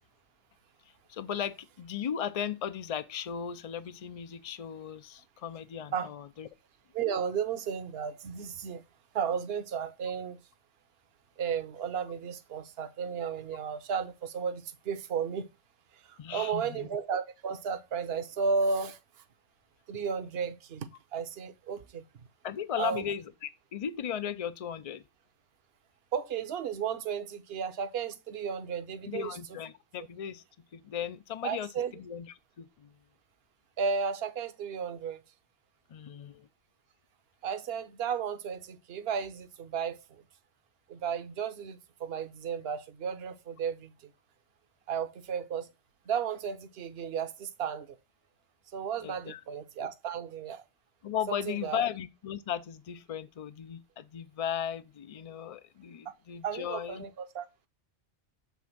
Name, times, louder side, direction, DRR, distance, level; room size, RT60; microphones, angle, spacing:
voice 1, 1.1-6.5 16.2-16.9 22.4-25.0 29.1-30.4 30.7-32.3 32.6-32.9 35.9-36.5 49.0-49.4 51.0-57.1, left 9 dB, 55° left, 0.4 m, -36 dB
voice 2, 6.9-8.8 9.1-10.4 11.4-15.5 15.9-19.2 19.9-22.0 22.8-23.0 26.1-29.4 31.4-31.9 33.8-35.2 37.4-40.2 40.9-44.1 44.9-45.7 46.1-48.0 48.7-50.6 51.3-51.9 56.0-56.1 56.4-57.5, right 6 dB, 60° right, 0.9 m, -34 dB
7.0 x 3.5 x 5.9 m
omnidirectional pair, 1.2 m